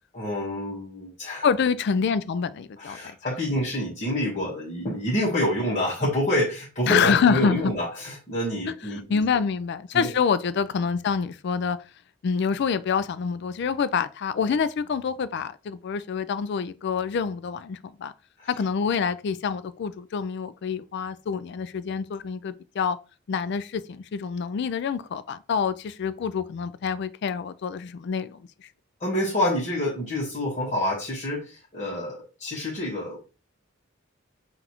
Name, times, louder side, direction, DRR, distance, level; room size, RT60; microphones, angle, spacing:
voice 1, 0.1-1.5 2.8-9.2 9.9-10.1 18.4-18.5 29.0-33.2, left 1 dB, 35° left, 1.2 m, -27 dB
voice 2, 1.4-3.0 6.9-7.7 8.6-11.8 12.2-18.1 18.5-23.0 23.3-28.4, left 6 dB, 60° left, 0.3 m, -26 dB
5.9 x 2.5 x 2.9 m
head